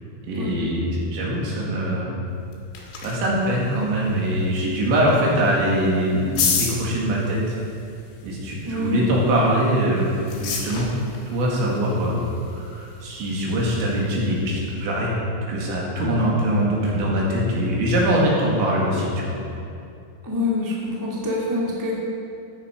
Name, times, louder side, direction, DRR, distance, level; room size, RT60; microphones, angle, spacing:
voice 1, 0.2-2.1 3.0-7.6 8.2-10.9 11.3-12.2 12.5-15.1 15.5-19.4, right 1 dB, 70° right, -4 dB, 4.5 m, -22 dB
sound 1, 2.3-14.9, left 6 dB, 80° left, 4.2 m, -34 dB
voice 2, 8.6-9.1 20.2-22.0, left 2 dB, 25° right, -5 dB, 0.4 m, -25 dB
13.5 x 10.0 x 5.3 m, 2.5 s
omnidirectional pair, 5.4 m